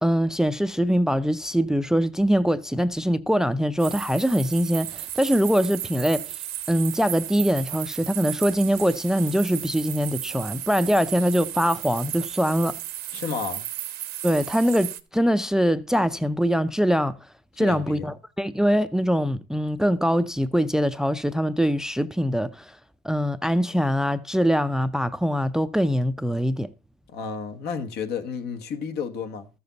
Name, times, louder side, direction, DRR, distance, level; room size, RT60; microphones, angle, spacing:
voice 1, 0.0-6.4 6.7-12.7 14.2-17.1 17.6-22.8 23.0-26.7, equal, 5° right, 0.5 m, -23 dB
sound 1, 3.8-15.0, right 13 dB, 70° right, 0.9 m, -34 dB
voice 2, 13.1-13.6 17.5-18.1 27.1-29.5, left 6 dB, 75° left, 1.3 m, -31 dB
13.5 x 7.0 x 3.9 m
cardioid pair, 110°, 17 cm